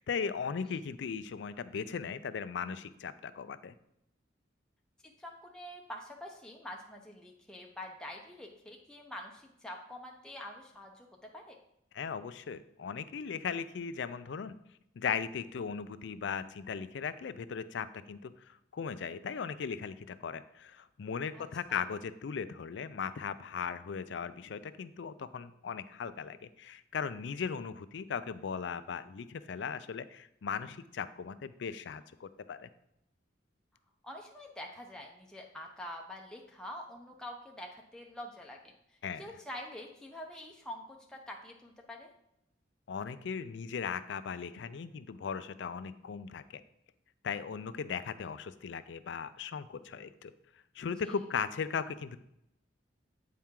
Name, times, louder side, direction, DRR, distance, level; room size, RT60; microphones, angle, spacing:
voice 1, 0.0-3.7 11.9-14.5 15.0-32.7 39.0-39.3 42.9-46.6 47.2-50.3 50.8-52.2, left 6 dB, 65° left, 13 dB, 0.4 m, -38 dB
voice 2, 5.2-11.6 21.3-21.8 34.0-42.1 50.9-51.1, left 1 dB, 5° left, -1 dB, 0.6 m, -46 dB
8.3 x 4.4 x 3.7 m, 0.81 s
head